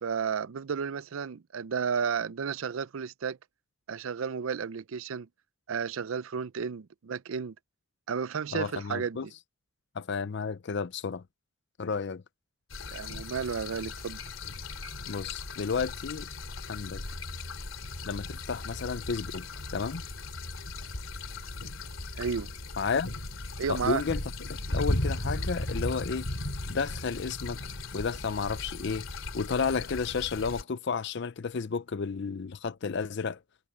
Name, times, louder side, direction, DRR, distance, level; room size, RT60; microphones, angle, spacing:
voice 1, 0.0-3.4 3.9-5.3 5.7-7.5 8.1-9.3 12.9-14.2 22.2-22.5 23.6-24.0, right 6 dB, 85° right, 0.5 m, -32 dB
voice 2, 8.5-9.3 9.9-11.2 11.8-12.2 15.1-16.3 16.7-17.0 18.0-19.5 19.7-20.0 22.8-23.1 23.7-24.2 24.7-26.3 26.7-27.6 27.9-33.4, left 5 dB, 55° left, 0.5 m, -32 dB
sound 1, 12.7-30.6, left 2 dB, 75° left, 2.7 m, -36 dB
head